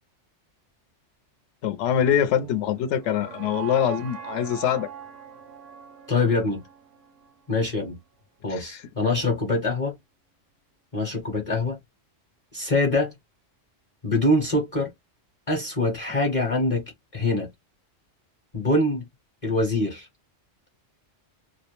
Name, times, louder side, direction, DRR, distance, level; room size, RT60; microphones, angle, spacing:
voice 1, 1.6-4.9 8.5-8.8, left 9 dB, 70° left, 0.9 m, -24 dB
sound 1, 1.8-7.9, right 9 dB, 80° right, 0.9 m, -42 dB
voice 2, 6.1-6.6 7.5-8.0 8.4-10.0 10.9-11.8 12.5-13.1 14.0-14.9 15.5-17.5 18.5-19.1 19.4-20.1, left 2 dB, 35° left, 0.8 m, -24 dB
2.3 x 2.0 x 2.9 m
omnidirectional pair, 1.2 m